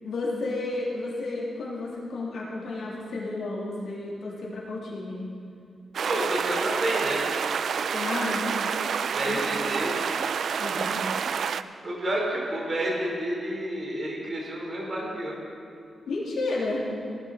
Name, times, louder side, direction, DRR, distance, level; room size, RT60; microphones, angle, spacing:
voice 1, 0.0-5.2 7.9-8.4 9.2-9.4 10.6-11.0 16.1-16.9, left 2 dB, 85° left, -5 dB, 3.0 m, -32 dB
sound 1, 5.9-11.6, right 6 dB, 65° right, 0.3 m, -28 dB
voice 2, 6.0-7.3 9.1-10.0 11.8-15.4, right 1 dB, 35° right, -3 dB, 3.7 m, -29 dB
17.0 x 11.5 x 4.0 m, 2.4 s
wide cardioid pair, 140°, 0 cm